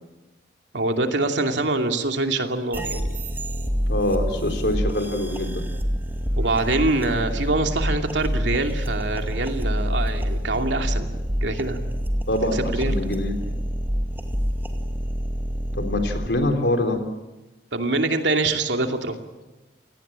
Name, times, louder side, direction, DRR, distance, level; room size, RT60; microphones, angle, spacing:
voice 1, 0.7-3.2 6.4-11.1 11.4-11.8 12.5-12.9 17.7-19.2, right 2 dB, 80° right, 4 dB, 2.7 m, -24 dB
sound 1, 2.7-16.3, equal, 10° right, 2.3 m, -27 dB
voice 2, 3.9-5.7 12.3-13.4 15.8-17.0, left 1 dB, 70° left, 5 dB, 3.9 m, -24 dB
29.5 x 18.0 x 8.9 m, 1.1 s
head